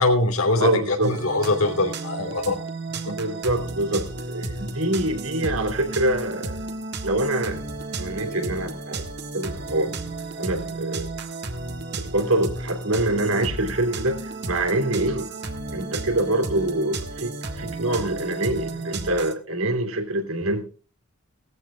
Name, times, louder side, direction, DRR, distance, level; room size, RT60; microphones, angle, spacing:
voice 1, 0.0-2.6 3.1-3.2, left 2 dB, 90° left, 3.1 m, -22 dB
voice 2, 0.6-1.1 3.1-6.6 7.0-7.6 8.0-9.0 9.3-9.9 10.4-11.1 12.0-15.3 15.7-20.6, right 1 dB, 85° right, 3.2 m, -25 dB
sound 1, 1.0-19.3, right 2 dB, 55° right, 1.6 m, -33 dB
18.5 x 14.5 x 2.3 m
head